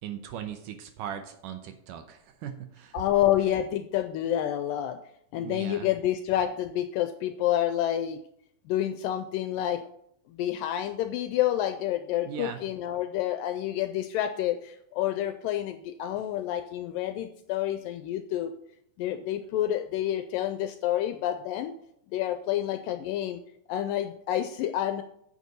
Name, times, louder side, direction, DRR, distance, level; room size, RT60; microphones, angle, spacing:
voice 1, 0.0-3.0 5.3-5.9 12.3-12.6, right 9 dB, 75° right, 7 dB, 2.1 m, -39 dB
voice 2, 2.9-5.0 5.3-8.2 8.7-9.8 10.3-18.5 19.0-21.7 22.1-23.4 23.7-25.0, left 12 dB, 80° left, 8 dB, 2.1 m, -28 dB
9.1 x 6.7 x 5.3 m, 0.71 s
omnidirectional pair, 4.2 m